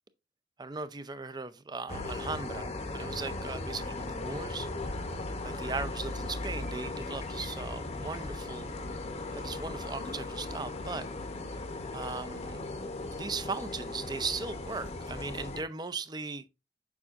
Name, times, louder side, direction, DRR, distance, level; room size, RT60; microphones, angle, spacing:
voice 1, 0.6-4.7 5.4-8.7 9.3-11.0 11.9-12.6 13.1-16.5, right 4 dB, 25° right, 0.5 m, -38 dB
sound 1, 1.9-15.6, left 2 dB, 35° left, 0.8 m, -37 dB
7.2 x 5.4 x 2.4 m
head